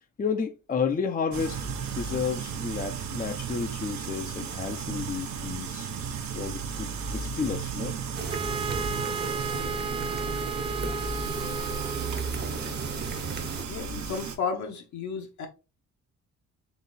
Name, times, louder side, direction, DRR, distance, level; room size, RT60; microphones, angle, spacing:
voice 1, 0.2-1.7 1.9-5.9 6.3-7.9, left 6 dB, 30° left, 0.6 m, -31 dB
sound 1, 1.3-14.4, right 6 dB, 65° right, 1.0 m, -35 dB
sound 2, 8.1-13.6, right 4 dB, 35° right, 0.9 m, -35 dB
Wind instrument woodwind instrument, 8.3-12.3, right 4 dB, 20° right, 0.4 m, -34 dB
voice 2, 13.7-15.5, left 5 dB, 70° left, 1.3 m, -33 dB
4.0 x 3.1 x 4.0 m
cardioid pair, 90°, 30 cm